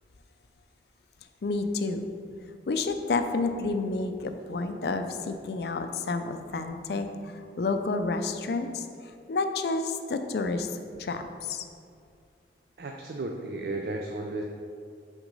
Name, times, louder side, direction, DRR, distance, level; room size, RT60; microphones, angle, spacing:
voice 1, 1.4-2.1 2.7-8.9 9.3-10.7 11.0-11.7, left 3 dB, 65° left, 8 dB, 0.4 m, -30 dB
voice 2, 12.8-14.4, right 2 dB, 60° right, 2 dB, 0.4 m, -34 dB
6.0 x 3.7 x 5.3 m, 2.3 s
head